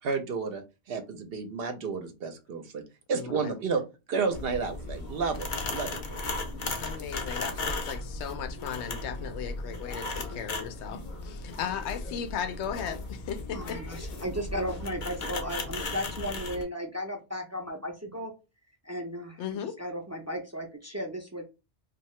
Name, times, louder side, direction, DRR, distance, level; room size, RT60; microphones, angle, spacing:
voice 1, 0.0-2.8 3.1-3.8 4.1-6.2, right 5 dB, 65° right, 0.8 m, -31 dB
voice 2, 3.1-3.5 6.8-14.1 19.4-19.8, left 8 dB, 85° left, 0.9 m, -36 dB
sound 1, 4.3-16.6, left 2 dB, 50° left, 0.7 m, -36 dB
voice 3, 13.5-18.3 18.8-21.4, equal, 25° right, 0.4 m, -35 dB
2.7 x 2.4 x 3.1 m
omnidirectional pair, 1.1 m